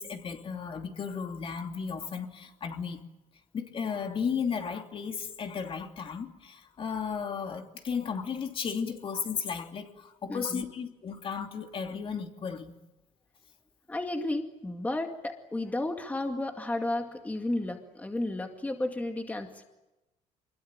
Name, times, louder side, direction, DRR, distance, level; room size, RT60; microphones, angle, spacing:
voice 1, 0.0-3.0 3.5-12.7, left 6 dB, 40° left, 2.9 m, -34 dB
voice 2, 10.3-10.6 13.9-19.6, left 2 dB, 10° left, 2.2 m, -33 dB
25.5 x 22.0 x 9.1 m
cardioid pair, 110°, 13 cm